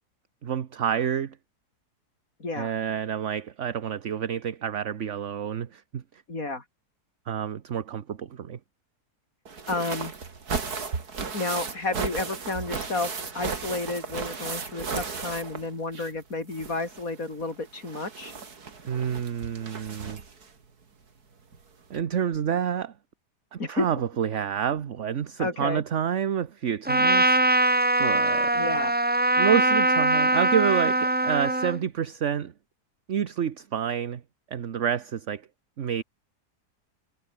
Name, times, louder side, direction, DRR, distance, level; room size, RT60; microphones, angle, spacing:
voice 1, 0.4-1.4 2.5-6.0 7.3-8.6 18.9-20.2 21.9-22.9 23.5-27.4 28.0-28.6 29.4-32.5 33.1-34.2 34.5-35.4 35.8-36.0, right 8 dB, 50° right, 1.3 m, -28 dB
voice 2, 2.4-2.7 6.3-6.6 9.7-10.1 11.3-18.3 23.6-23.9 25.4-25.8 28.6-28.9, left 3 dB, 55° left, 5.7 m, -31 dB
sound 1, 9.5-16.2 16.5-20.5 21.5-21.6 21.9-22.0, right 5 dB, 70° right, 3.0 m, -35 dB
Trumpet, 26.9-31.8, right 1 dB, 15° right, 0.3 m, -22 dB
omnidirectional pair, 1.7 m